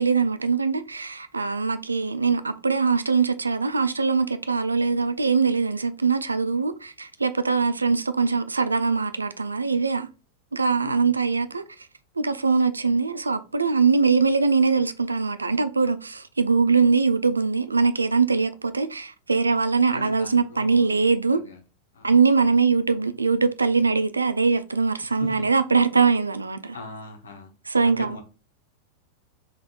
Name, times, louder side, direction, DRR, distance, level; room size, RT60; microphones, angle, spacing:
voice 1, 0.0-10.1 10.5-11.6 12.2-21.4 22.0-26.8 27.7-28.2, right 4 dB, 80° right, 0.3 m, -22 dB
voice 2, 10.8-11.4 19.9-20.9 21.3-21.6 21.9-22.2 25.2-25.3 26.7-27.5 27.8-28.2, left 5 dB, 70° left, 1.0 m, -40 dB
3.6 x 3.5 x 2.5 m
figure-of-eight pair, 90°, 0 cm